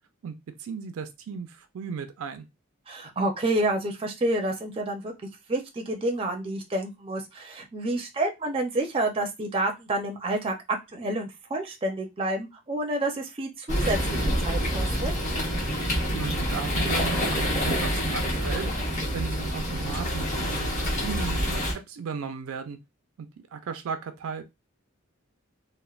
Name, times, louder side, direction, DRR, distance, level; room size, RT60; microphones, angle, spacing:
voice 1, 0.2-2.5 16.1-18.7 19.1-22.8 23.2-24.6, right 6 dB, 85° right, 0.4 m, -36 dB
voice 2, 2.9-5.1 5.5-10.5 10.9-15.1, right 1 dB, 25° right, 0.4 m, -29 dB
sound 1, 13.7-21.7, equal, 35° left, 1.0 m, -27 dB
3.1 x 2.0 x 2.3 m
head